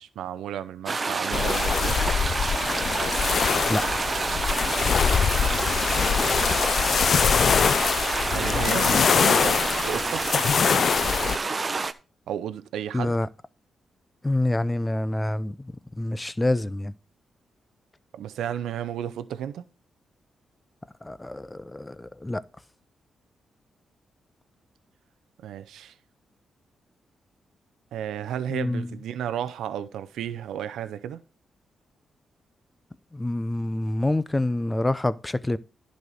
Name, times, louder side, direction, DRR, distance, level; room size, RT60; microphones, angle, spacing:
voice 1, 0.0-2.1 5.9-6.4 8.3-10.5 12.3-13.1 18.2-19.6 25.4-25.9 27.9-31.2, right 10 dB, 85° right, 0.5 m, -33 dB
sound 1, 0.9-11.9, right 4 dB, 35° right, 0.7 m, -28 dB
sound 2, 1.3-11.4, left 7 dB, 60° left, 0.4 m, -23 dB
voice 2, 3.7-4.0 12.9-13.3 14.2-16.9 21.0-22.4 28.5-29.0 33.1-35.6, left 1 dB, 15° left, 0.6 m, -27 dB
10.5 x 4.2 x 6.3 m
cardioid pair, 65°, 0 cm